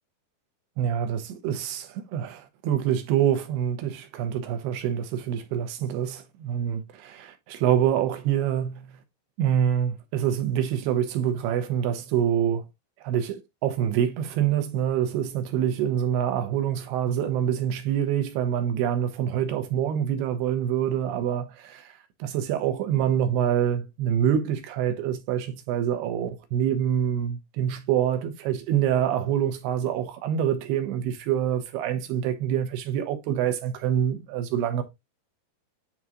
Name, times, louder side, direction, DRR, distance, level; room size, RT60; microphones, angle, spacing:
voice 1, 0.8-9.0 9.4-12.6 13.0-21.9 22.2-34.8, right 9 dB, 85° right, 2.9 m, -26 dB
9.4 x 3.7 x 3.0 m
omnidirectional pair, 4.7 m